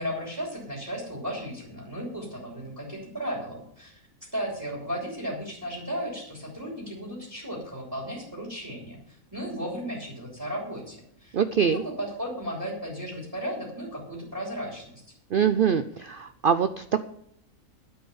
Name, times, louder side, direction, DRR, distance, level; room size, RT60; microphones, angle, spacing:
voice 1, 0.0-4.0 4.3-11.4 11.7-15.0, equal, 15° right, -2 dB, 3.3 m, -35 dB
voice 2, 11.3-11.8 15.3-17.0, right 7 dB, 65° right, 11 dB, 0.5 m, -24 dB
10.5 x 8.7 x 7.1 m, 0.71 s
omnidirectional pair, 1.5 m